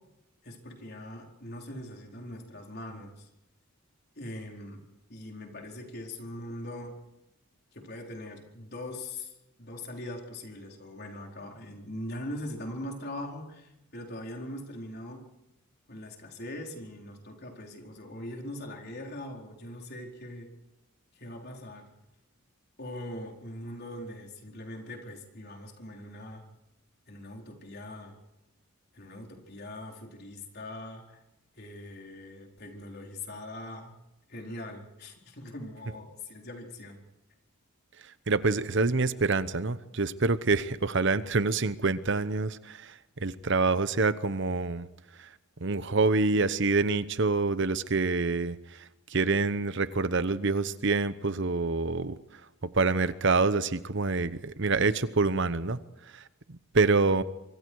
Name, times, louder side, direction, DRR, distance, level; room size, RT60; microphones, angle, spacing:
voice 1, 0.4-3.3 4.2-4.8 5.1-7.0 7.7-15.2 15.9-20.5 21.1-21.8 22.8-26.4 27.1-28.1 28.9-31.2 31.6-34.0 34.3-37.0, left 1 dB, 45° left, 1 dB, 4.4 m, -41 dB
voice 2, 38.3-44.9 45.2-45.3 45.6-52.2 52.7-55.8 56.1-57.2, right 3 dB, 55° right, 14 dB, 0.9 m, -26 dB
25.5 x 24.5 x 4.8 m, 0.91 s
head